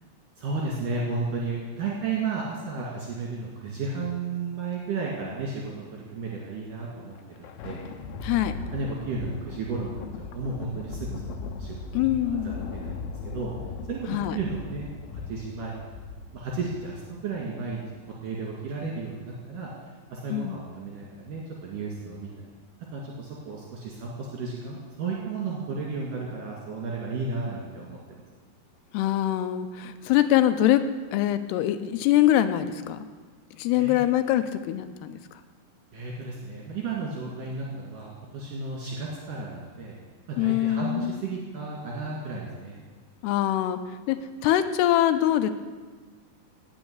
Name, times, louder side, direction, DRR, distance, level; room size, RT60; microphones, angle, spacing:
voice 1, 0.4-7.8 8.7-13.5 13.9-15.7 16.3-19.7 20.1-22.5 22.9-28.2 33.8-34.0 35.9-39.9 40.3-42.8, right 4 dB, 55° right, -3 dB, 3.4 m, -33 dB
Thunder, 7.0-17.8, left 4 dB, 70° left, 2.7 m, -38 dB
voice 2, 8.2-8.6 11.9-12.5 14.1-14.4 20.3-20.6 28.9-30.8 31.1-33.1 33.6-35.2 40.4-41.2 43.2-43.8 44.1-45.5, left 12 dB, 85° left, 11 dB, 2.7 m, -23 dB
18.0 x 6.5 x 9.4 m, 1.4 s
omnidirectional pair, 4.8 m